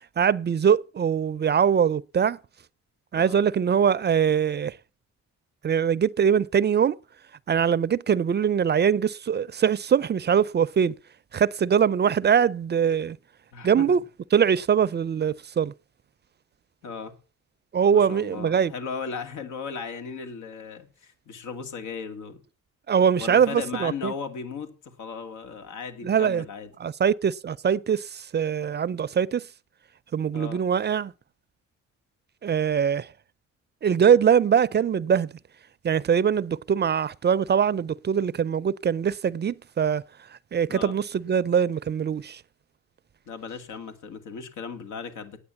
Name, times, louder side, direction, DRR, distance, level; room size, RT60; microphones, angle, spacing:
voice 1, 0.2-2.4 3.1-4.8 5.6-7.0 7.5-11.0 11.3-13.2 13.6-14.0 14.3-15.7 17.7-18.7 22.9-24.1 26.0-26.4 26.8-29.5 30.1-31.1 32.4-33.1 33.8-35.3 35.8-40.0 40.3-42.4, right 7 dB, 35° right, 0.5 m, -22 dB
voice 2, 13.5-14.0 16.8-17.1 17.9-22.4 23.2-26.7 30.3-30.6 40.7-40.9 43.3-45.4, left 5 dB, 85° left, 2.4 m, -36 dB
9.7 x 8.6 x 7.0 m
cardioid pair, 90°, 30 cm